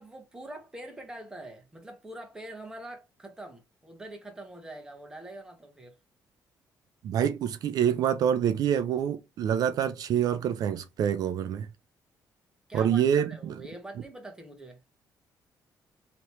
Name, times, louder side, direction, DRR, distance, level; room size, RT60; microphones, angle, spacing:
voice 1, 0.0-6.0 12.7-14.8, right 1 dB, 10° right, 1.0 m, -44 dB
voice 2, 7.0-11.7 12.7-13.6, right 9 dB, 65° right, 0.4 m, -26 dB
3.1 x 2.9 x 3.0 m
cardioid pair, 135°, 7 cm